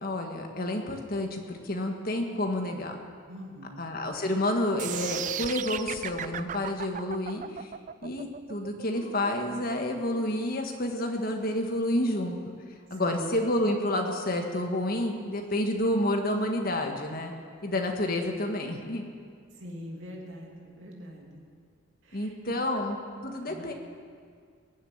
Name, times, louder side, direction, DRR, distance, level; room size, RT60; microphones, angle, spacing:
voice 1, 0.0-2.9 3.8-7.7 8.0-12.4 12.9-17.3 17.6-19.0 22.1-23.0 23.2-23.7, left 1 dB, 45° left, 3 dB, 1.7 m, -29 dB
voice 2, 3.3-3.9 12.9-13.3 17.4-17.8 19.5-21.4 22.0-22.5 23.3-23.7, equal, 65° right, -1 dB, 2.9 m, -44 dB
sound 1, 4.8-10.8, right 9 dB, 35° right, 0.4 m, -36 dB
sound 2, 6.1-6.4 6.9-7.5 8.9-9.4 10.1-10.7 11.2-11.5 13.1-13.2 13.9-14.0 14.6-14.7 15.4-15.6 16.3-16.4, right 1 dB, 20° left, 5.2 m, -51 dB
21.0 x 7.6 x 8.8 m, 2.1 s
head